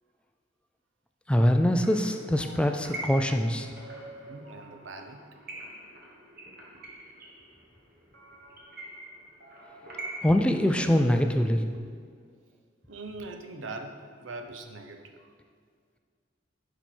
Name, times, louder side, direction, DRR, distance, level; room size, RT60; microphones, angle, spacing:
voice 1, 1.3-3.7 10.2-11.6, equal, 5° left, 5 dB, 0.3 m, -23 dB
sound 1, 1.6-11.3, right 1 dB, 55° right, 1.4 m, -44 dB
voice 2, 4.0-5.2 6.8-6.9 12.9-15.3, right 2 dB, 75° right, 6 dB, 0.7 m, -42 dB
11.0 x 4.6 x 4.4 m, 2.1 s
head